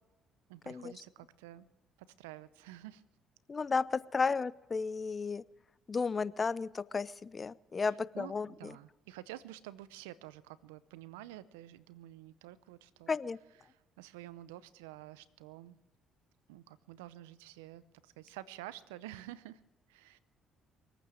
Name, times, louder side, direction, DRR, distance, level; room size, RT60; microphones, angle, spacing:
voice 1, 0.5-1.7 2.2-3.0 7.9-13.2 13.6-15.8 16.5-19.6 19.9-20.2, right 15 dB, 90° right, 17 dB, 0.6 m, -49 dB
voice 2, 3.5-5.4 5.9-8.7 13.1-13.4, left 4 dB, 35° left, 19 dB, 0.6 m, -33 dB
23.5 x 9.2 x 6.3 m, 1.0 s
hypercardioid pair, 60°, 0 cm